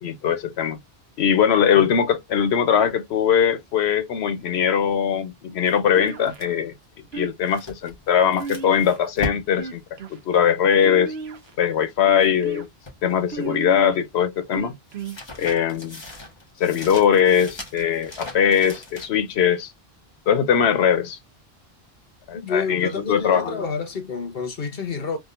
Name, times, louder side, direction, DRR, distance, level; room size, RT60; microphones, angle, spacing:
voice 1, 0.0-0.8 1.2-6.7 7.1-9.8 10.3-11.1 11.6-12.7 13.0-14.7 15.4-16.0 16.6-19.7 20.3-21.2 22.3-23.6, left 8 dB, 90° left, 1.0 m, -21 dB
sound 1, 5.7-12.3 12.6-13.8 14.0-19.3, left 2 dB, 25° left, 1.1 m, -40 dB
sound 2, 5.9-6.6 7.1-7.7 8.4-9.1 9.5-10.2 10.8-11.5 12.1-12.6 13.3-14.0 14.5-15.2, right 4 dB, 80° right, 0.9 m, -33 dB
voice 2, 22.3-25.2, left 5 dB, 65° left, 1.2 m, -29 dB
3.6 x 2.4 x 2.4 m
omnidirectional pair, 1.0 m